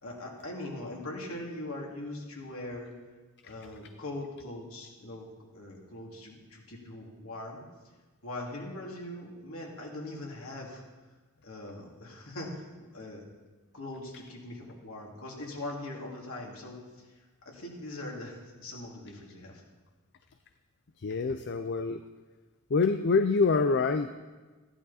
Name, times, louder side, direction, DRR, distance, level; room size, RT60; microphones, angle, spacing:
voice 1, 0.0-2.9 3.4-7.6 8.2-10.8 11.4-13.2 13.7-17.1 17.4-19.6, left 1 dB, 65° left, -1 dB, 2.8 m, -41 dB
voice 2, 21.0-22.0 22.7-24.2, left 4 dB, 50° left, 9 dB, 0.5 m, -26 dB
15.0 x 11.0 x 4.3 m, 1.3 s
head